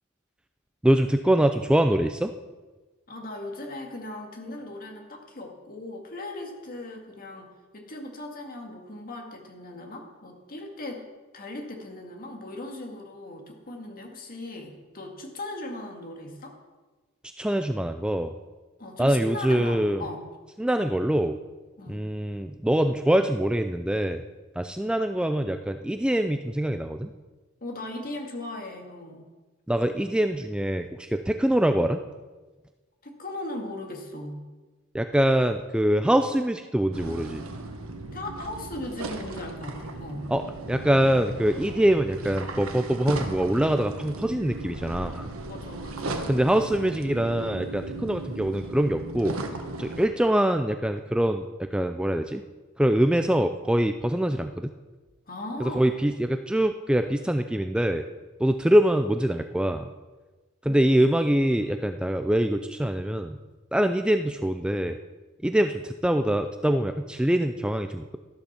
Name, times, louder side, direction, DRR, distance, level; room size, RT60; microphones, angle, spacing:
voice 1, 0.8-2.3 17.4-18.3 19.0-20.0 20.6-21.4 21.9-24.2 24.6-27.1 29.7-32.0 34.9-37.4 40.3-40.4 40.7-45.3 46.3-49.4 49.8-52.4 52.8-54.7 55.6-58.1 58.4-59.9 60.6-63.4 63.7-65.0 65.4-68.2, right 1 dB, 5° right, 7 dB, 0.3 m, -24 dB
voice 2, 3.1-7.5 7.7-11.0 11.3-16.6 18.8-20.2 21.8-22.0 27.6-29.3 33.0-34.5 38.1-40.3 45.5-46.2 55.3-55.8 60.6-60.8, left 2 dB, 45° left, 2 dB, 2.1 m, -38 dB
sound 1, 36.9-50.1, right 2 dB, 80° right, 1.3 m, -36 dB
13.0 x 12.0 x 4.3 m, 1.2 s
head